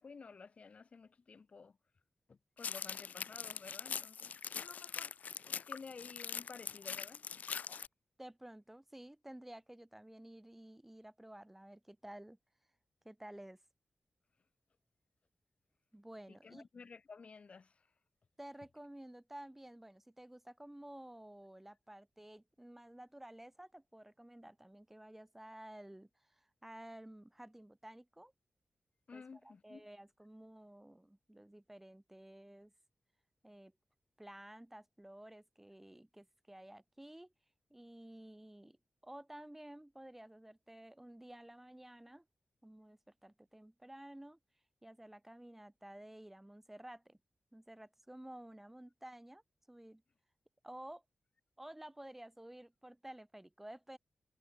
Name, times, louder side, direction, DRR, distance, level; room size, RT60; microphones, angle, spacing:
voice 1, 0.0-1.8 2.3-5.2 5.5-7.2 16.4-17.9 29.1-29.9, left 5 dB, 55° left, 1.4 m, -53 dB
sound 1, 2.6-7.9, left 7 dB, 85° left, 1.0 m, -42 dB
voice 2, 8.2-12.4 13.0-13.6 15.9-16.7 18.4-28.3 29.1-32.7 33.4-33.7 34.2-37.3 37.7-38.8 39.0-42.3 42.6-44.4 44.8-47.2 47.5-49.4 49.7-50.0 50.6-51.0 51.6-54.0, right 1 dB, 10° right, 2.5 m, -53 dB
wide cardioid pair, 110°, 3 cm